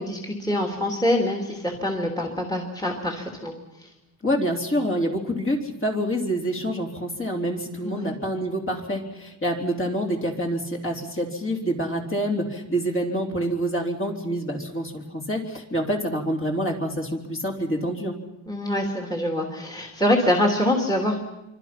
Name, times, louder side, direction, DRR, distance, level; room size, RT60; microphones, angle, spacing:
voice 1, 0.0-3.5 7.8-8.1 18.5-21.2, left 1 dB, 10° left, 2 dB, 2.8 m, -25 dB
voice 2, 4.2-18.2, equal, 25° left, 0 dB, 3.6 m, -27 dB
27.5 x 24.5 x 6.0 m, 0.95 s
wide cardioid pair, 140°, 48 cm